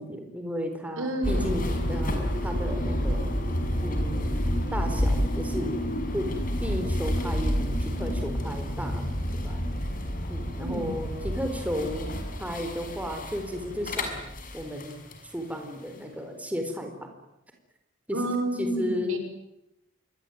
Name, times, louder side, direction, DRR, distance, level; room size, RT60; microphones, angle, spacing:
voice 1, 0.0-3.3 3.8-4.4 4.7-5.8 6.1-6.3 6.6-9.1 9.3-9.6 10.3-12.1 12.4-15.0 15.3-17.1 18.1-18.2 18.5-19.2, equal, 5° right, 4 dB, 4.4 m, -34 dB
voice 2, 1.0-1.6 10.6-11.0 18.1-19.2, right 1 dB, 85° right, 6 dB, 6.2 m, -30 dB
sound 1, 1.2-15.2, equal, 45° left, 5.7 m, -29 dB
27.5 x 23.0 x 9.4 m, 0.85 s
head